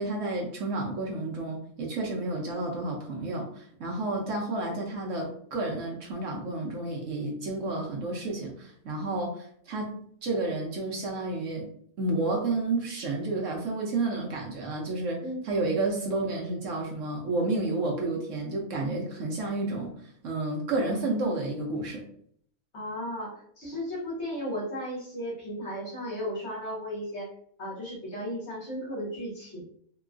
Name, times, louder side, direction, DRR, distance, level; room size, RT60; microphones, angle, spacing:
voice 1, 0.0-9.9 10.2-11.7 12.0-22.0, right 2 dB, 65° right, -1 dB, 1.0 m, -31 dB
voice 2, 22.7-27.3 27.6-29.6, equal, 50° left, -5 dB, 1.6 m, -35 dB
3.7 x 2.3 x 2.4 m, 0.63 s
omnidirectional pair, 1.6 m